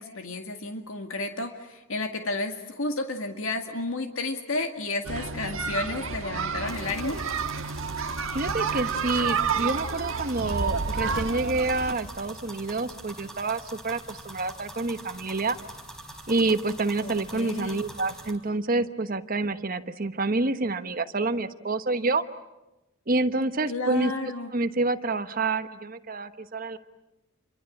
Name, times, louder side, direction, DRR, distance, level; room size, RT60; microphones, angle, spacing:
voice 1, 0.0-7.2 17.0-17.8 23.7-24.5, left 2 dB, 85° left, 5 dB, 2.0 m, -32 dB
sound 1, 5.0-11.9, right 5 dB, 80° right, 1.4 m, -30 dB
sound 2, 6.6-18.3, right 1 dB, ahead, 4.4 m, -44 dB
voice 2, 8.3-15.6 16.3-22.3 23.1-24.1 24.5-26.8, right 3 dB, 45° right, 10 dB, 1.2 m, -28 dB
Fire, 10.4-12.8, right 2 dB, 65° right, 0.9 m, -35 dB
28.5 x 23.5 x 8.6 m, 1.0 s
head